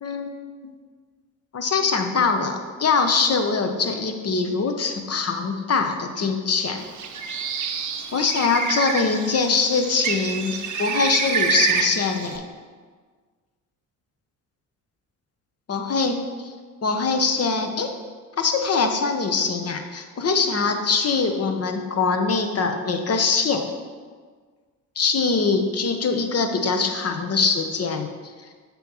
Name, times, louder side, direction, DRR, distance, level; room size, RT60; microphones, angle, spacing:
voice 1, 0.0-0.7 1.5-6.9 8.1-12.5 15.7-16.5 16.8-17.9 18.4-23.6 25.0-28.1, left 4 dB, 35° left, 6 dB, 0.9 m, -23 dB
Bird, 6.8-12.4, right 6 dB, 45° right, 0.8 m, -27 dB
6.8 x 3.1 x 5.6 m, 1.6 s
hypercardioid pair, 55°, 43 cm